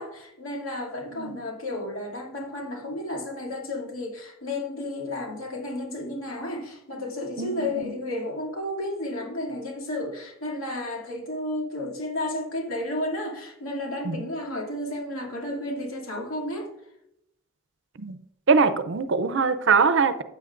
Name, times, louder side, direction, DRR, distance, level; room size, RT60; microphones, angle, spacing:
voice 1, 0.0-16.7, left 1 dB, 75° left, 2.5 m, -32 dB
voice 2, 18.5-20.2, right 5 dB, 55° right, 0.5 m, -22 dB
15.0 x 8.3 x 2.5 m
head